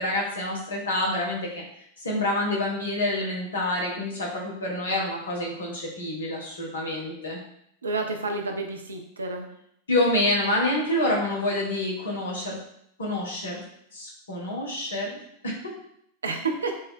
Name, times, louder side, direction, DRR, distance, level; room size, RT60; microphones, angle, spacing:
voice 1, 0.0-1.6 2.0-7.4 9.9-12.6 13.0-13.6 13.9-15.7, left 1 dB, 65° left, -2 dB, 1.4 m, -27 dB
voice 2, 7.8-9.5 16.2-16.8, right 3 dB, 70° right, 4 dB, 0.7 m, -29 dB
5.2 x 2.8 x 3.7 m, 0.71 s
figure-of-eight pair, 90°, 0 cm